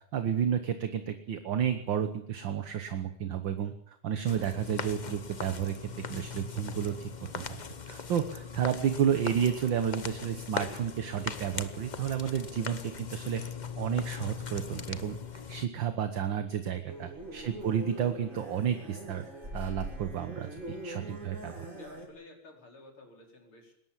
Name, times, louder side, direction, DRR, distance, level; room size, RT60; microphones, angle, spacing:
voice 1, 0.1-5.8 6.1-7.6 7.9-13.4 13.8-19.3 19.5-21.7, right 9 dB, 60° right, 9 dB, 1.8 m, -31 dB
sound 1, 4.3-15.7, left 6 dB, 45° left, 0.5 m, -40 dB
sound 2, 16.9-22.1, right 1 dB, 35° right, 5.3 m, -42 dB
voice 2, 17.3-17.7 21.6-23.7, left 2 dB, 70° left, 2 dB, 5.6 m, -53 dB
21.0 x 18.5 x 7.4 m, 0.72 s
omnidirectional pair, 2.4 m